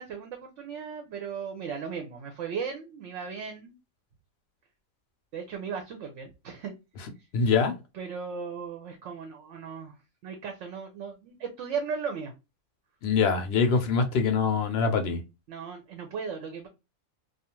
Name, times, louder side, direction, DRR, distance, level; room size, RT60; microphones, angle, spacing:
voice 1, 0.0-3.7 5.3-6.7 7.9-9.9 10.2-12.3 13.8-13.9 15.5-16.7, right 6 dB, 70° right, 0.8 m, -36 dB
voice 2, 7.3-7.7 13.0-15.2, left 5 dB, 60° left, 0.7 m, -24 dB
2.4 x 2.3 x 2.8 m
omnidirectional pair, 1.4 m